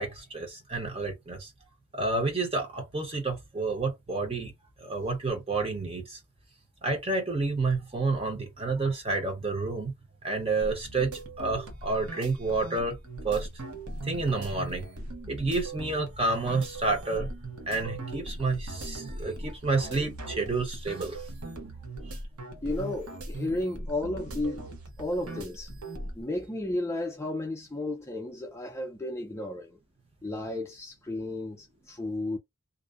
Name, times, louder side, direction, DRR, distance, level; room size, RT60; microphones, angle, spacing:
voice 1, 0.0-1.5 1.9-4.5 4.8-6.2 6.8-9.9 10.2-11.1 11.4-13.0 13.2-13.5 14.0-14.9 15.3-17.3 17.7-21.2 22.1-22.2 22.5-22.6, right 3 dB, 25° right, 0.7 m, -29 dB
sound 1, 10.6-26.2, right 2 dB, 85° right, 0.8 m, -40 dB
voice 2, 22.6-24.7 25.0-25.7 26.2-29.8 30.2-32.4, left 2 dB, 10° left, 0.4 m, -33 dB
2.5 x 2.0 x 2.4 m
head